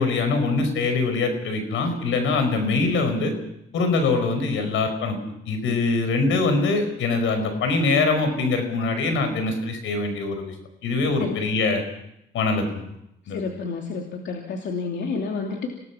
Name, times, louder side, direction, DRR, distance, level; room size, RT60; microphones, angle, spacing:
voice 1, 0.0-3.3 3.7-10.6 10.8-11.8 12.3-12.8 13.3-13.4, left 3 dB, 80° left, 7 dB, 5.2 m, -23 dB
voice 2, 13.2-15.7, left 4 dB, 65° left, 1 dB, 2.9 m, -30 dB
27.5 x 18.0 x 6.0 m, 0.80 s
cardioid pair, 90°, 20 cm